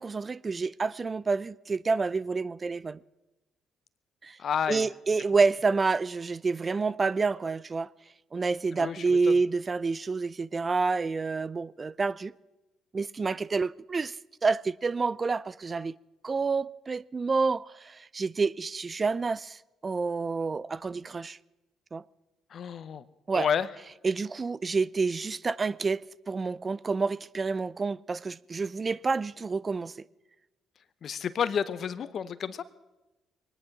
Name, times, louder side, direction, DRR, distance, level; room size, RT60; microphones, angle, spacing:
voice 1, 0.0-3.0 4.2-4.4 4.7-7.9 8.3-12.3 12.9-14.2 14.4-15.9 16.2-21.4 21.9-22.0 23.3-23.5 24.0-29.9, right 4 dB, 35° right, 0.5 m, -28 dB
voice 2, 4.4-4.9 8.7-9.2 22.5-23.0 23.4-23.7 31.0-32.6, left 7 dB, 55° left, 0.8 m, -30 dB
23.5 x 10.0 x 5.9 m
hypercardioid pair, 50°, 0 cm